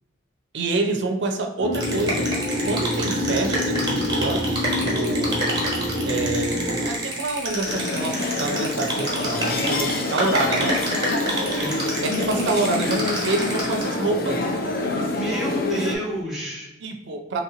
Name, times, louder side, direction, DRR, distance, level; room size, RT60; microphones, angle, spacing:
voice 1, 0.5-2.3 2.6-5.5 6.0-10.8 12.0-14.5 16.8-17.4, right 2 dB, 65° right, 5 dB, 0.4 m, -27 dB
sound 1, 1.6-6.9, left 1 dB, 75° left, 1.5 m, -26 dB
sound 2, 1.7-14.0, right 1 dB, 20° right, 1.2 m, -29 dB
sound 3, 7.7-16.0, left 2 dB, 50° left, 0.5 m, -26 dB
voice 2, 11.5-11.8 15.0-16.7, right 1 dB, ahead, -4 dB, 1.0 m, -29 dB
3.2 x 2.9 x 3.6 m, 0.95 s
head